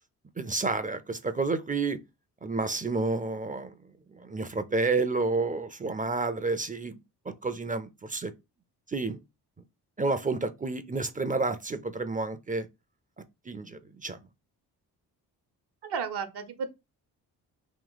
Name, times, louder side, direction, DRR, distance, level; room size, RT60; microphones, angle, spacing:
voice 1, 0.4-2.0 2.4-3.7 4.1-7.0 7.3-8.3 8.9-9.2 10.0-12.7 13.5-14.2, right 3 dB, 20° right, 0.5 m, -30 dB
voice 2, 15.8-16.7, right 6 dB, 65° right, 0.9 m, -33 dB
3.1 x 2.9 x 3.9 m
supercardioid pair, 50°, 42 cm